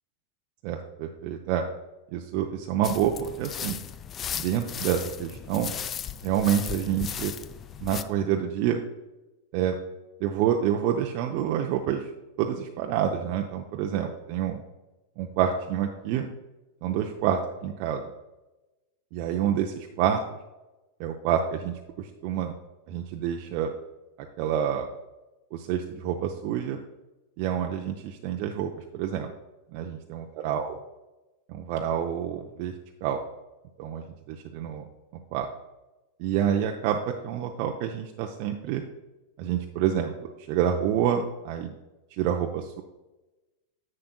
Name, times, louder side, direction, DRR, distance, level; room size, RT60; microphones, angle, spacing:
voice 1, 0.6-1.7 2.1-3.8 4.3-5.7 6.2-7.3 7.8-8.8 9.5-9.8 10.2-12.0 12.4-14.6 15.2-16.3 16.8-18.0 19.1-20.2 21.0-22.5 22.9-23.7 24.4-24.9 25.5-26.8 27.4-29.3 29.7-30.8 31.5-32.7 33.0-33.2 33.8-34.8 35.3-35.5 36.2-38.8 39.4-41.7 42.1-42.8, right 9 dB, 45° right, 2 dB, 0.6 m, -28 dB
sound 1, 2.8-8.0, left 9 dB, 25° left, 0.4 m, -36 dB
10.5 x 8.6 x 2.3 m, 1.1 s
figure-of-eight pair, 90°, 0 cm